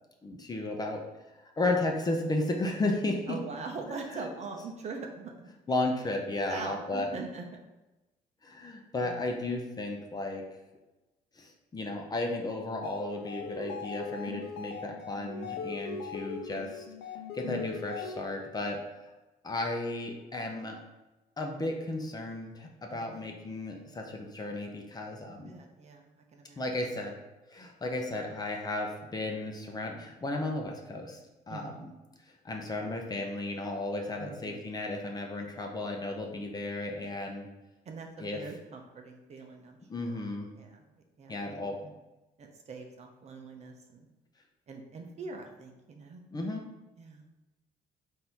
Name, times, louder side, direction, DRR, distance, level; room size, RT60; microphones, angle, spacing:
voice 1, 0.2-1.0 1.6-3.4 3.9-4.3 5.7-7.1 8.4-10.4 11.4-16.8 17.3-19.1 19.4-20.8 21.4-25.5 26.6-27.2 27.5-31.2 31.5-31.9 32.3-37.5 38.2-38.4 39.9-40.5 41.3-41.9 46.3-46.6, left 2 dB, 25° left, 1 dB, 0.7 m, -34 dB
voice 2, 3.3-5.5 6.5-7.5 9.0-9.3 17.4-17.6 22.9-23.3 25.3-26.9 31.5-31.9 34.2-34.6 37.9-40.2 40.5-41.6 42.4-44.1 44.7-46.2 47.0-47.2, right 4 dB, 40° right, 3 dB, 0.7 m, -43 dB
sound 1, 12.7-18.5, left 5 dB, 90° left, 0.6 m, -40 dB
3.9 x 2.7 x 4.5 m, 1.1 s
cardioid pair, 110°, 17 cm